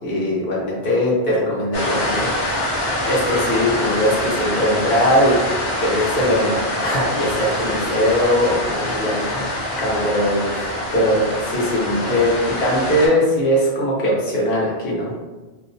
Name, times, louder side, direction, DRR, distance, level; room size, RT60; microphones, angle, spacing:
voice 1, 0.0-2.7 3.0-5.4 5.8-15.1, left 1 dB, 80° left, -4 dB, 1.0 m, -20 dB
sound 1, 1.7-13.1, left 1 dB, 50° left, 0.7 m, -25 dB
2.5 x 2.0 x 2.5 m, 1.2 s
omnidirectional pair, 1.0 m